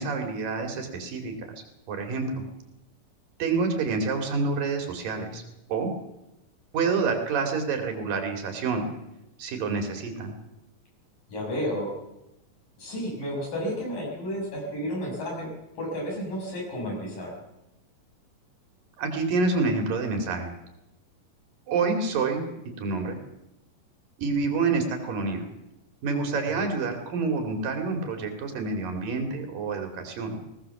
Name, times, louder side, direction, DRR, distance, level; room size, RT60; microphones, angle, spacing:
voice 1, 0.0-1.3 1.9-2.4 3.4-5.4 5.7-5.9 6.7-8.9 9.4-10.4 19.0-20.5 21.7-22.5 22.8-23.2 24.2-25.5 26.0-30.4, right 4 dB, 85° right, 5 dB, 4.4 m, -27 dB
voice 2, 11.3-11.9 12.8-15.5 15.8-17.4, equal, 75° left, -2 dB, 8.8 m, -32 dB
20.0 x 18.0 x 7.2 m, 0.90 s
omnidirectional pair, 3.8 m